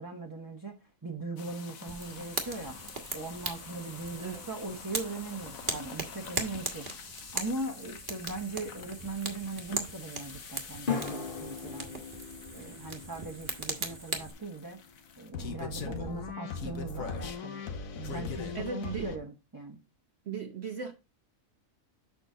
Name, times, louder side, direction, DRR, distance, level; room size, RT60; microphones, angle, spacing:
voice 1, 0.0-2.8 3.1-12.0 12.5-14.8 15.2-17.6 18.0-19.8, right 3 dB, 15° right, 1.0 m, -40 dB
sound 1, 1.4-19.2, left 5 dB, 85° left, 1.4 m, -43 dB
Fire, 1.9-14.3, right 3 dB, 40° right, 1.4 m, -39 dB
sound 2, 5.4-6.0 10.9-15.2, left 6 dB, 40° left, 1.8 m, -40 dB
voice 2, 18.5-19.1 20.3-20.9, right 6 dB, 55° right, 1.1 m, -37 dB
6.9 x 6.0 x 3.8 m
omnidirectional pair, 1.4 m